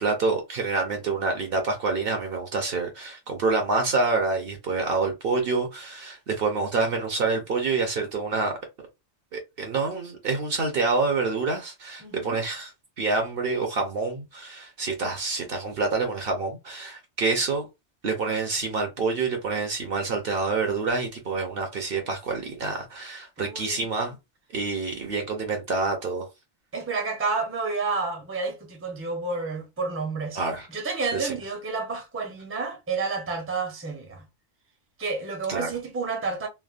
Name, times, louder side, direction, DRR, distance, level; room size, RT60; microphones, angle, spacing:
voice 1, 0.0-8.5 9.3-12.7 13.0-17.6 18.0-24.2 24.5-26.3 30.4-30.7 31.1-31.3 35.5-35.7, right 3 dB, 55° right, 0.8 m, -27 dB
voice 2, 12.0-12.4 23.4-23.9 26.7-30.4 30.7-34.2 35.0-36.5, right 4 dB, 15° right, 0.6 m, -30 dB
3.3 x 2.1 x 2.4 m
omnidirectional pair, 1.3 m